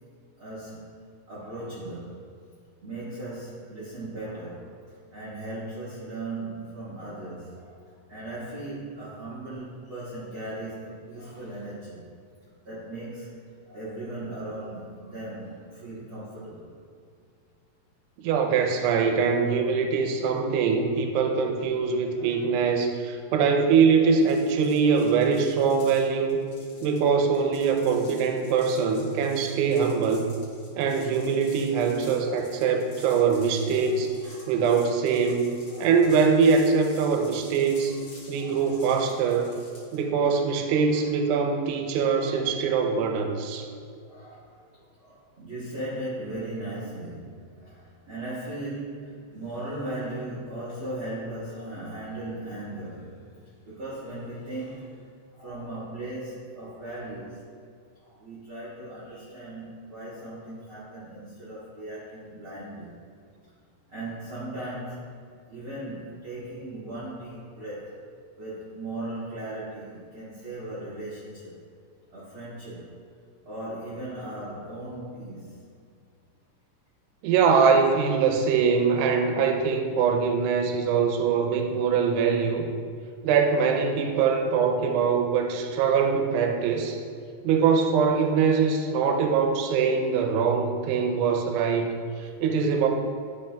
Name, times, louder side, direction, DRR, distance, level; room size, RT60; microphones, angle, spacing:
voice 1, 0.4-2.3 2.8-4.7 5.1-7.8 8.1-12.0 12.6-13.4 13.6-16.8 22.1-22.3 33.7-34.6 35.7-35.9 37.8-38.0 38.3-38.7 40.7-41.0 42.2-42.6 44.1-44.6 45.0-53.2 53.6-55.0 55.3-57.4 58.0-63.0 63.9-65.2 65.5-67.9 68.4-71.6 72.1-72.9 73.4-75.5, right 1 dB, 60° right, -10 dB, 1.3 m, -38 dB
voice 2, 18.2-26.4 26.8-30.3 30.8-34.1 34.5-35.5 35.8-38.0 38.3-39.5 39.9-43.7 77.2-82.7 83.2-87.0 87.4-92.9, right 5 dB, 85° right, 4 dB, 2.8 m, -23 dB
sound 1, 24.2-40.0, left 2 dB, 50° left, 1.8 m, -51 dB
12.0 x 5.3 x 2.2 m, 2.3 s
omnidirectional pair, 4.7 m